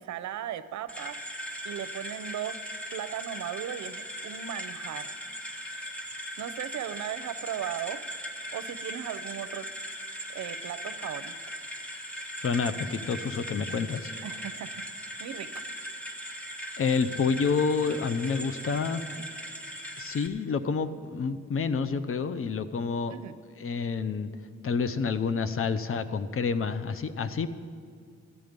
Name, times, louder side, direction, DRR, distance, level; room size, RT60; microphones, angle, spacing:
voice 1, 0.0-2.6 2.9-5.2 5.7-5.9 6.4-8.0 8.5-9.7 10.3-11.3 14.2-14.9 15.2-15.5 23.1-23.4, right 10 dB, 70° right, 13 dB, 0.6 m, -37 dB
sound 1, 0.9-20.3, equal, 5° left, 1.3 m, -39 dB
voice 2, 12.4-14.1 16.8-19.0 20.0-23.2 23.6-24.3 24.6-27.5, left 5 dB, 45° left, 12 dB, 0.7 m, -28 dB
14.0 x 9.4 x 5.2 m, 2.2 s
cardioid pair, 60°, 30 cm